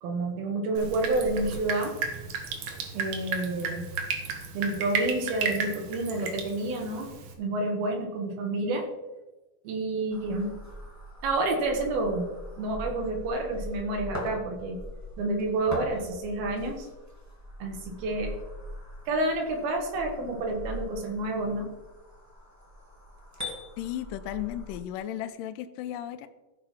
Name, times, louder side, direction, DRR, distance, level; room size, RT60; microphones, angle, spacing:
voice 1, 0.0-2.0 2.9-3.9 4.5-7.1 7.4-8.9 9.6-10.6 11.2-12.3 12.6-14.8 15.2-16.9 17.6-18.3 19.1-21.7, right 2 dB, 85° right, 2 dB, 3.4 m, -29 dB
Drip, 0.8-7.3, right 5 dB, 65° right, 2.9 m, -34 dB
sound 1, 10.1-24.8, equal, 15° right, 0.5 m, -42 dB
voice 2, 23.8-26.3, left 12 dB, 80° left, 9 dB, 2.1 m, -35 dB
15.5 x 5.5 x 5.7 m, 1.1 s
omnidirectional pair, 4.2 m